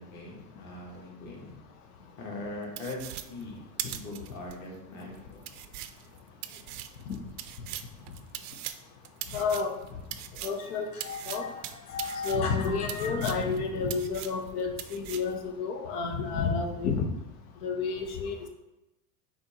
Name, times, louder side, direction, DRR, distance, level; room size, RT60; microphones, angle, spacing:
voice 1, 0.0-1.5 2.2-3.0 3.3-3.6 3.9-5.4 6.5-6.6, left 2 dB, 40° left, -2 dB, 1.5 m, -41 dB
sound 1, 2.8-4.5 5.0-5.1 5.4-10.6 11.0-13.6 13.9-14.5 14.8-15.3, right 12 dB, 70° right, 0.5 m, -40 dB
voice 2, 9.3-9.7 10.4-11.5 11.9-17.1 17.6-18.3, left 5 dB, 75° left, 5 dB, 0.8 m, -30 dB
4.2 x 2.8 x 4.2 m, 0.95 s
supercardioid pair, 115°, 46 cm